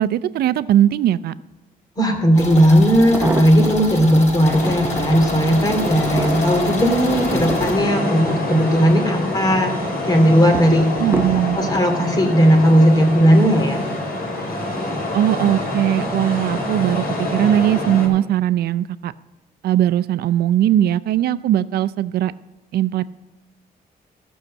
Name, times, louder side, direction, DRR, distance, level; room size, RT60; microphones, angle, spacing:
voice 1, 0.0-1.3 11.0-11.7 15.1-19.1 19.6-22.3 22.7-23.0, right 12 dB, 85° right, 15 dB, 0.5 m, -19 dB
voice 2, 2.0-11.0 11.5-13.8, equal, 25° left, 4 dB, 2.6 m, -16 dB
sound 1, 2.1-2.2 2.9-3.9 4.4-5.1 5.6-9.0 9.4-9.9 10.5-11.9 12.7-13.0 13.3-13.4, right 2 dB, 15° right, 0.7 m, -29 dB
sound 2, 2.3-7.7, left 2 dB, 45° left, 4.8 m, -30 dB
sound 3, 4.4-18.1, left 1 dB, 65° left, 4.7 m, -25 dB
14.0 x 6.4 x 7.5 m, 1.0 s
cardioid pair, 105°, 16 cm